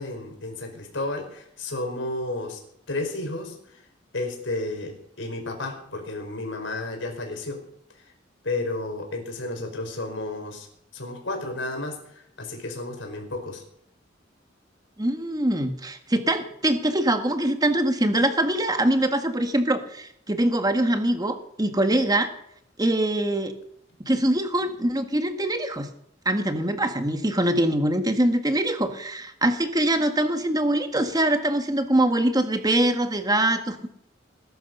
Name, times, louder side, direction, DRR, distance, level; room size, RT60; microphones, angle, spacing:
voice 1, 0.0-2.6 2.9-3.6 4.1-7.6 8.4-10.7 10.9-13.6, left 2 dB, 90° left, 2 dB, 4.8 m, -32 dB
voice 2, 15.0-22.3 22.8-23.5 24.0-25.9 26.2-33.8, right 1 dB, 20° right, 7 dB, 1.7 m, -23 dB
20.0 x 11.5 x 5.5 m, 0.71 s
head